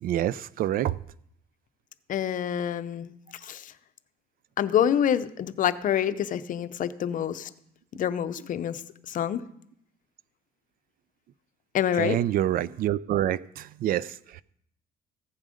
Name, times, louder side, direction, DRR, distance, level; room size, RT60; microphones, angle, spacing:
voice 1, 0.0-1.0 11.9-14.4, right 12 dB, 60° right, 0.4 m, -27 dB
voice 2, 2.1-3.7 4.6-7.5 7.9-8.8 9.1-9.4 11.7-12.2, left 9 dB, 50° left, 0.6 m, -27 dB
15.0 x 7.4 x 5.1 m
cardioid pair, 110°, 17 cm